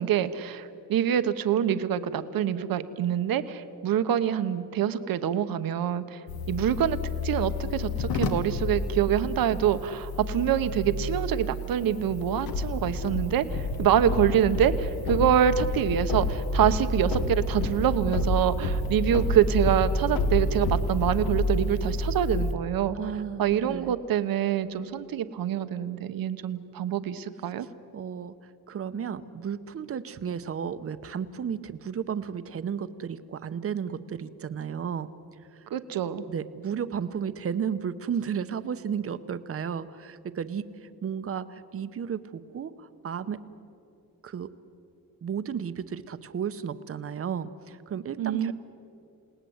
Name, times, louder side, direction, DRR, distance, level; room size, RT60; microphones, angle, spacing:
voice 1, 0.0-7.0 7.2-23.0 23.4-27.7 35.7-36.2 48.2-48.5, right 9 dB, 75° right, 11 dB, 1.1 m, -26 dB
sound 1, 6.3-22.5, left 2 dB, 85° left, 1.7 m, -29 dB
voice 2, 22.9-23.9 27.9-28.3 28.7-35.1 35.6-35.7 36.3-43.4 44.2-44.5 45.2-48.5, right 7 dB, 40° right, 12 dB, 0.8 m, -33 dB
29.0 x 18.5 x 7.9 m, 2.6 s
wide cardioid pair, 175°, 35 cm